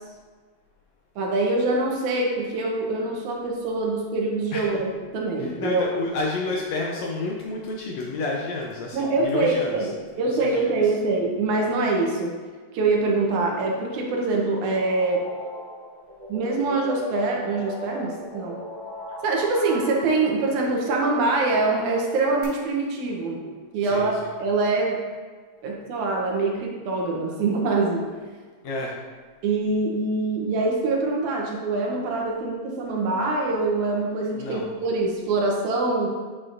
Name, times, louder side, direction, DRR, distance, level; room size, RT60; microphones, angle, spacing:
voice 1, 1.2-5.8 8.9-12.3 12.7-15.2 16.3-18.6 19.2-23.5 23.7-25.0 25.6-28.0 29.4-36.1, right 3 dB, 70° right, -1 dB, 2.0 m, -24 dB
voice 2, 4.5-4.8 5.4-9.9 10.2-10.9 23.8-24.1 28.6-29.0 34.4-34.7, left 2 dB, 85° left, -2 dB, 1.5 m, -30 dB
sound 1, 14.0-22.4, equal, 50° left, 2.9 m, -36 dB
8.4 x 6.6 x 2.5 m, 1.5 s
omnidirectional pair, 4.0 m